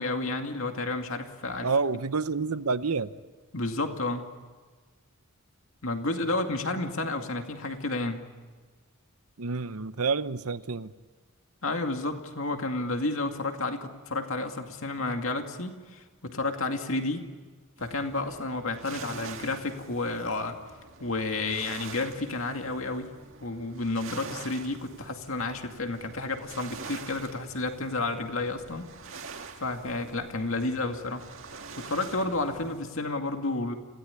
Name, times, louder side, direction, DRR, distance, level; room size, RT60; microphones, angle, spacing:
voice 1, 0.0-1.7 3.5-4.3 5.8-8.2 11.6-17.3 17.8-20.6 21.0-23.1 23.4-28.9 29.6-31.3 31.8-33.7, left 2 dB, 65° left, 5 dB, 2.3 m, -31 dB
voice 2, 1.6-3.1 9.4-10.9, right 4 dB, 85° right, 13 dB, 0.9 m, -28 dB
sound 1, 17.8-32.8, right 5 dB, 60° right, 1.9 m, -45 dB
27.5 x 17.5 x 9.9 m, 1.5 s
head